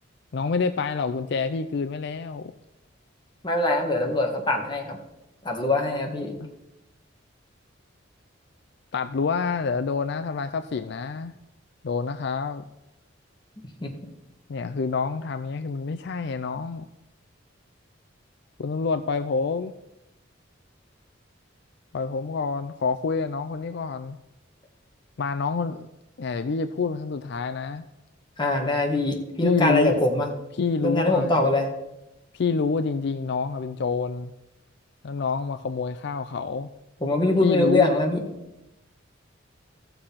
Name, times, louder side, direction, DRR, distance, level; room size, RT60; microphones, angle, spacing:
voice 1, 0.3-2.5 6.4-6.5 8.9-11.3 11.8-12.6 14.5-16.9 18.6-19.7 21.9-24.2 25.2-25.9 26.2-27.8 29.4-30.0 30.6-31.4 32.3-34.3 35.0-36.7 37.4-37.9, left 4 dB, 60° left, 9 dB, 0.4 m, -27 dB
voice 2, 3.4-5.0 5.4-6.4 13.8-13.9 28.4-30.3 30.8-31.7 37.0-38.3, left 2 dB, 25° left, 2 dB, 1.7 m, -23 dB
14.5 x 6.9 x 5.7 m, 0.93 s
head